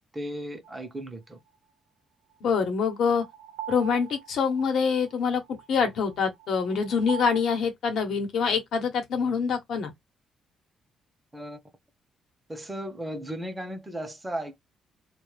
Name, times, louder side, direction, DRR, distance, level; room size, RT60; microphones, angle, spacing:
voice 1, 0.1-1.4 11.3-11.6 12.5-14.5, right 1 dB, 15° right, 0.7 m, -35 dB
sound 1, 0.6-0.7 2.6-7.4, right 10 dB, 90° right, 0.5 m, -42 dB
voice 2, 2.4-3.2 3.7-5.4 5.7-9.9, left 6 dB, 70° left, 0.9 m, -25 dB
2.3 x 2.1 x 3.2 m
cardioid pair, 90°, 0 cm